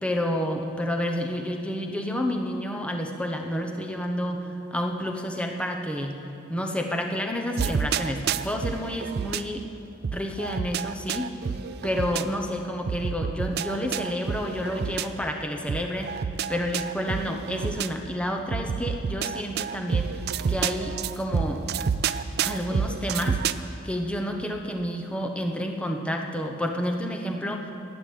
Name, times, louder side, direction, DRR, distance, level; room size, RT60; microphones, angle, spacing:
voice 1, 0.0-6.2 6.5-9.6 10.1-11.4 11.8-20.2 20.5-21.6 22.4-23.4 23.8-27.7, equal, 5° left, 2 dB, 0.9 m, -30 dB
sound 1, 7.6-9.4 10.0-12.2 12.9-15.1 15.7-17.9 18.5-23.5, right 6 dB, 50° right, 0.4 m, -29 dB
11.5 x 7.9 x 9.9 m, 2.9 s
head